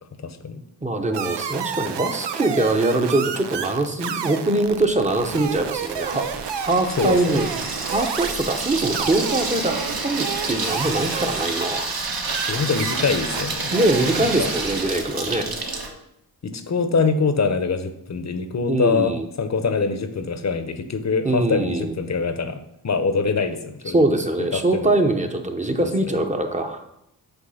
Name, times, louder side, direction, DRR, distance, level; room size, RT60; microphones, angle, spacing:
voice 1, 0.2-0.6 7.0-7.5 12.5-13.7 14.2-14.5 16.4-24.0 24.5-25.0 25.8-25.9, left 4 dB, 40° left, 9 dB, 0.8 m, -24 dB
voice 2, 0.8-6.3 6.5-7.5 7.9-11.9 13.7-15.5 18.7-19.3 21.2-22.0 23.9-26.8, right 2 dB, 15° right, 5 dB, 0.9 m, -22 dB
sound 1, 1.1-11.5 12.2-14.3, right 8 dB, 80° right, 0.6 m, -31 dB
Water tap faucet / Sink (filling or washing), 4.7-15.9, right 3 dB, 60° right, 1.3 m, -29 dB
8.0 x 3.2 x 5.7 m, 0.80 s
cardioid pair, 75°, 41 cm